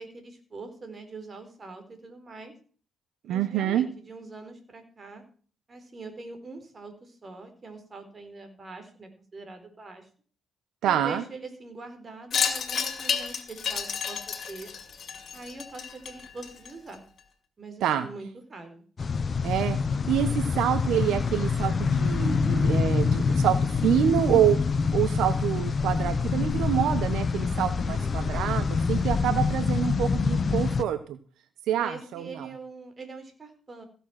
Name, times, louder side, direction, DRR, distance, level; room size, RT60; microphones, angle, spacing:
voice 1, 0.0-2.5 3.2-5.2 5.7-10.0 10.8-14.2 14.5-14.7 15.3-17.0 17.6-18.8 27.8-28.7 31.8-33.9, right 3 dB, 35° right, 7 dB, 3.8 m, -43 dB
voice 2, 3.3-3.9 10.8-11.2 17.8-18.1 19.4-19.8 20.1-24.6 24.9-31.2 31.7-32.5, right 10 dB, 85° right, 11 dB, 1.0 m, -26 dB
Wind chime, 12.3-16.9, left 7 dB, 55° left, 2.5 m, -31 dB
sound 1, 19.0-30.8, left 5 dB, 40° left, 0.9 m, -26 dB
16.0 x 7.2 x 5.9 m, 0.41 s
cardioid pair, 90°, 0 cm